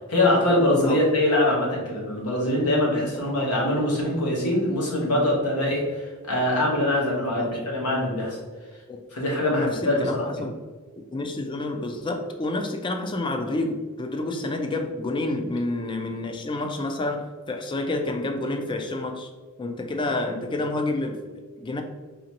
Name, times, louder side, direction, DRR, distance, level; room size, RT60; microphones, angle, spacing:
voice 1, 0.1-8.4 9.1-10.2, left 1 dB, 85° left, -2 dB, 1.2 m, -23 dB
voice 2, 9.5-10.6 11.1-19.3 19.6-21.2 21.6-21.8, left 2 dB, 20° left, 5 dB, 0.3 m, -29 dB
3.9 x 3.0 x 2.9 m, 1.4 s
head